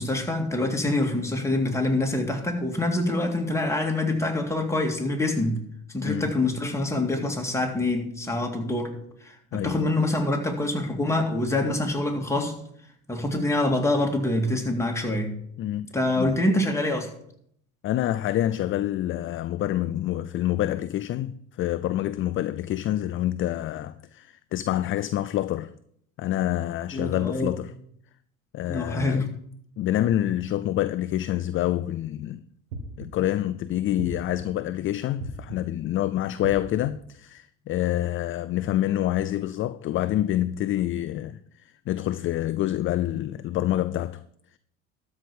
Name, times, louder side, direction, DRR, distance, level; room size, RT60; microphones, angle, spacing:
voice 1, 0.0-5.6 5.9-12.6 13.1-15.3 15.9-17.1 26.9-27.5 28.7-29.3, left 2 dB, 5° left, 2.2 m, -25 dB
voice 2, 6.0-6.3 9.5-9.7 15.6-15.9 16.2-16.4 17.8-25.7 26.2-27.7 28.5-29.3 29.8-32.4 33.0-44.2, left 13 dB, 35° left, 0.4 m, -27 dB
sound 1, 32.7-33.4 34.0-34.6 35.2-35.8 36.4-37.1, right 2 dB, 75° right, 1.9 m, -38 dB
13.0 x 4.8 x 7.1 m
hypercardioid pair, 70°, 39 cm